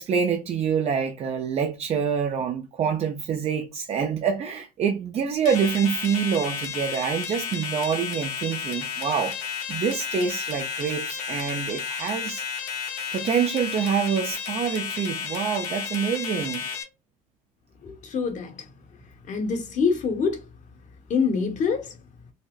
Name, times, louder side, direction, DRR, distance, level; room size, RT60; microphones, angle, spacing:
voice 1, 0.0-9.4 9.7-12.4 13.1-16.7, right 7 dB, 40° right, 0.5 m, -26 dB
sound 1, 5.4-16.8, left 6 dB, 85° left, 1.0 m, -32 dB
voice 2, 17.8-18.7 19.3-20.4 21.1-21.9, left 5 dB, 50° left, 1.1 m, -25 dB
4.0 x 2.0 x 2.3 m
supercardioid pair, 90°, 16 cm